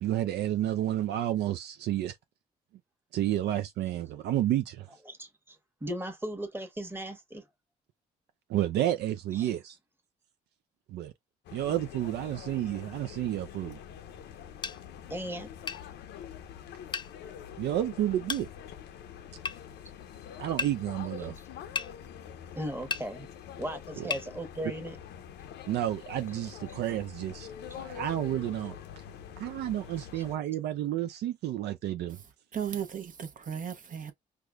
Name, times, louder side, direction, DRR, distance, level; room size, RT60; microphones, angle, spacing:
voice 1, 0.0-2.1 3.1-4.9 8.5-9.8 10.9-11.1 11.5-13.8 17.6-18.5 20.4-21.4 24.0-24.1 25.7-27.5 27.7-28.8 29.4-32.2, right 12 dB, 75° right, 0.4 m, -30 dB
voice 2, 5.1-7.4 9.3-9.5 15.1-15.5 22.5-23.3 23.5-25.0 30.1-30.2, right 1 dB, 10° right, 1.1 m, -37 dB
sound 1, 11.4-30.3, left 9 dB, 80° left, 0.6 m, -45 dB
sound 2, 14.6-14.8 15.7-15.8 16.9-17.1 18.3-18.5 19.4-19.6 20.6-20.7 21.7-21.9 22.9-23.1 24.1-24.3, left 5 dB, 25° left, 0.4 m, -33 dB
voice 3, 32.1-34.1, right 8 dB, 50° right, 0.8 m, -36 dB
4.7 x 2.2 x 2.4 m
supercardioid pair, 65°, 18 cm